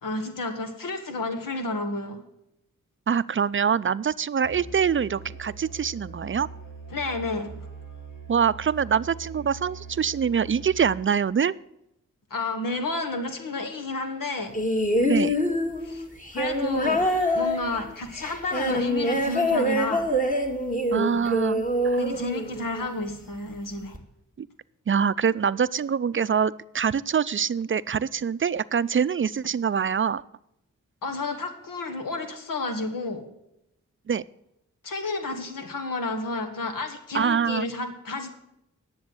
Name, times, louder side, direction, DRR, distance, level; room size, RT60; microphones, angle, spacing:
voice 1, 0.0-2.2 6.9-7.5 12.3-14.6 15.8-16.0 16.3-17.1 17.3-20.1 22.0-24.0 31.0-33.2 34.8-38.3, left 2 dB, 85° left, 6 dB, 1.5 m, -31 dB
voice 2, 3.1-6.5 8.3-11.5 15.1-15.4 20.9-22.0 24.4-24.5 24.9-30.2 34.1-34.2 37.1-37.7, right 7 dB, 40° right, 17 dB, 0.4 m, -24 dB
Musical instrument, 4.4-11.2, right 4 dB, 65° left, 5.2 m, -42 dB
sound 1, 14.5-22.9 23.9-24.0, equal, 25° left, 2.1 m, -25 dB
10.5 x 7.2 x 7.7 m, 0.81 s
cardioid pair, 45°, 32 cm